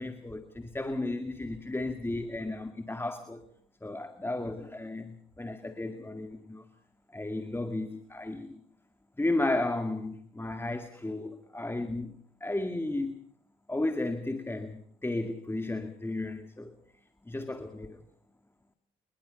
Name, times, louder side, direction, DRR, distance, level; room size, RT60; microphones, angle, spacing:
voice 1, 0.0-3.4 3.8-6.7 7.1-8.6 9.2-12.1 12.4-13.2 13.7-16.8 17.3-18.0, left 2 dB, 10° left, 2.1 m, -34 dB
26.0 x 21.5 x 5.3 m
cardioid pair, 90°, 20 cm